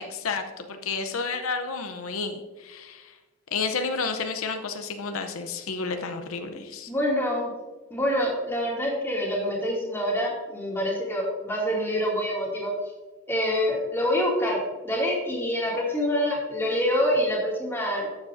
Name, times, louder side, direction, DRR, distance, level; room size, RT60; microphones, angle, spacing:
voice 1, 0.0-3.2 3.5-6.9, left 4 dB, 80° left, 7 dB, 0.7 m, -31 dB
voice 2, 6.5-7.5 7.9-12.7 13.3-14.6 14.8-18.1, equal, 10° left, -4 dB, 2.2 m, -26 dB
12.5 x 7.3 x 2.6 m, 1.2 s
head